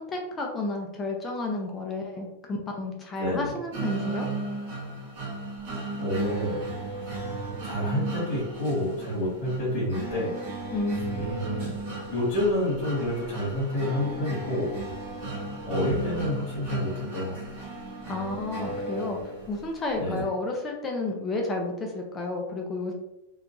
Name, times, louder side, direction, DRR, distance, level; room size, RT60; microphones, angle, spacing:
voice 1, 0.0-4.3 10.7-11.3 18.1-22.9, left 2 dB, 15° left, 1 dB, 0.3 m, -31 dB
voice 2, 3.2-3.5 6.0-6.6 7.0-7.1 7.6-10.3 11.1-11.7 12.1-14.7 15.6-17.6 20.0-20.3, left 1 dB, 45° left, -9 dB, 1.5 m, -28 dB
sound 1, 3.7-19.7, right 2 dB, 45° right, 1.0 m, -35 dB
2.8 x 2.2 x 2.5 m, 0.92 s
supercardioid pair, 170°, 0 cm